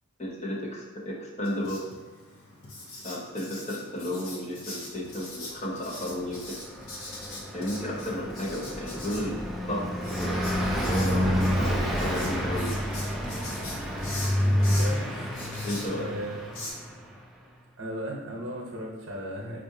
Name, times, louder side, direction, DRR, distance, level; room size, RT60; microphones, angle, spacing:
voice 1, 0.2-1.9 3.0-6.6 7.5-9.4 9.7-9.9 10.2-10.4 10.8-12.8 14.7-14.8 15.6-16.1, left 1 dB, 35° left, -2 dB, 0.7 m, -33 dB
Writing, 1.4-16.7, left 2 dB, 75° left, 0.8 m, -43 dB
Car passing by, 6.1-17.1, equal, ahead, 0.3 m, -29 dB
voice 2, 14.4-15.3 15.9-16.5 17.8-19.6, equal, 65° right, 0 dB, 0.8 m, -36 dB
4.7 x 2.5 x 2.7 m, 1.2 s
head